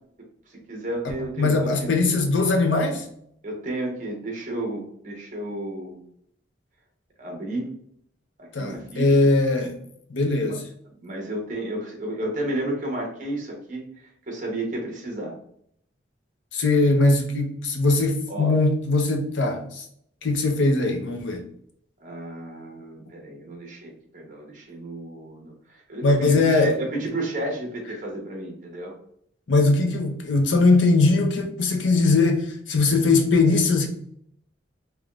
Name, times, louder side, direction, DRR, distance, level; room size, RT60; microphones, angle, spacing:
voice 1, 0.7-2.0 3.4-6.0 7.2-7.7 8.4-9.2 10.5-10.6 11.0-13.8 14.3-15.3 18.3-18.5 22.0-28.9, right 1 dB, 45° right, 1.0 m, -32 dB
voice 2, 1.2-3.0 8.5-9.8 10.1-10.6 16.5-19.8 20.2-21.4 26.0-26.7 29.5-33.9, left 3 dB, 85° left, 0.7 m, -20 dB
3.4 x 3.1 x 2.4 m
head